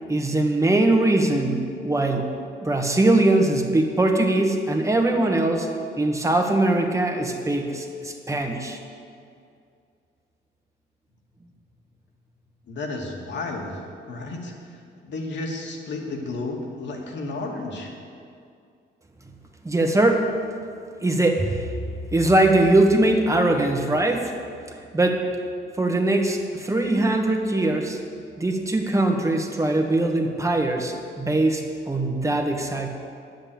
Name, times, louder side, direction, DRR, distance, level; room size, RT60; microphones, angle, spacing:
voice 1, 0.1-2.3 2.6-5.7 6.0-8.8 19.6-20.3 21.0-21.7 22.1-24.3 24.9-25.3 25.8-28.0 28.4-32.9, right 2 dB, 15° right, 3 dB, 1.5 m, -21 dB
voice 2, 12.7-14.8 15.0-17.9, left 2 dB, 65° left, 0 dB, 2.2 m, -32 dB
9.8 x 7.8 x 8.9 m, 2.3 s
cardioid pair, 90°, 20 cm